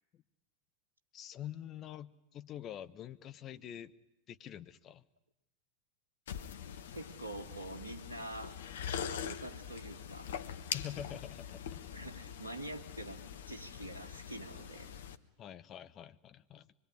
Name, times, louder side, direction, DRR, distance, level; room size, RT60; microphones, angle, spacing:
voice 1, 1.1-3.9 4.3-5.0 10.7-11.8 15.4-16.7, left 10 dB, 30° left, 11 dB, 1.1 m, -46 dB
sound 1, 6.3-15.2, left 8 dB, 60° left, 1.2 m, -43 dB
voice 2, 6.9-8.6 9.1-10.3 11.9-13.2 13.5-14.9, right 2 dB, 80° right, 5 dB, 1.9 m, -45 dB
24.5 x 22.5 x 10.0 m, 0.86 s
figure-of-eight pair, 90°, 0 cm